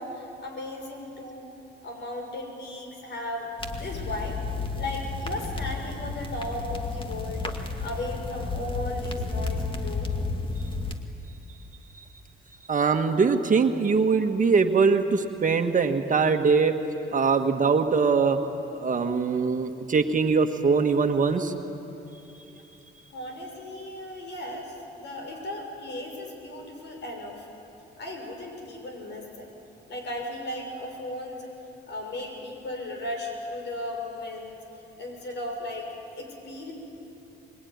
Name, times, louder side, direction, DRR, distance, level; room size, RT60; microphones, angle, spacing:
voice 1, 0.0-1.5 1.8-4.4 4.7-10.1 23.1-27.5 28.0-29.5 29.9-31.5 31.9-34.6 35.0-36.7, left 1 dB, 65° left, 2 dB, 6.5 m, -36 dB
sound 1, 3.6-11.0, left 3 dB, 25° left, 2.2 m, -32 dB
voice 2, 12.7-16.7 17.1-18.4 18.7-21.5 22.4-22.5, right 5 dB, 40° right, 5 dB, 1.7 m, -22 dB
24.5 x 22.0 x 9.6 m, 3.0 s
cardioid pair, 90°, 20 cm